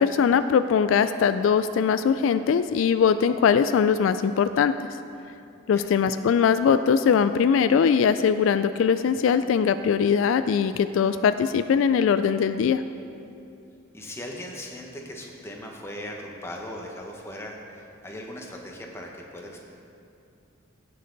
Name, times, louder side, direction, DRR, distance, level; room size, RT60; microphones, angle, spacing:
voice 1, 0.0-4.7 5.7-12.8, left 7 dB, 70° left, 11 dB, 0.3 m, -21 dB
voice 2, 13.9-19.7, left 1 dB, 15° left, 0 dB, 1.1 m, -39 dB
16.5 x 6.7 x 4.0 m, 2.6 s
head